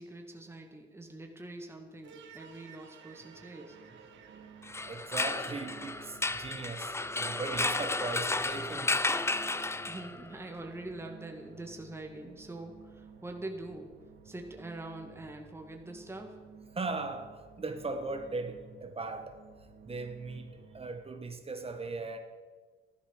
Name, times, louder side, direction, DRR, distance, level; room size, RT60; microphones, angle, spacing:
voice 1, 0.0-3.8 9.9-13.9 14.2-16.4, right 2 dB, 10° right, 2 dB, 1.9 m, -44 dB
sound 1, 2.0-21.0, right 5 dB, 70° right, 1.8 m, -54 dB
sound 2, 4.6-10.3, left 2 dB, 15° left, 0.6 m, -33 dB
voice 2, 4.9-9.1 16.7-19.3 19.8-22.2, right 3 dB, 30° right, 7 dB, 1.4 m, -38 dB
13.0 x 12.0 x 6.4 m, 1.5 s
cardioid pair, 90°, 20 cm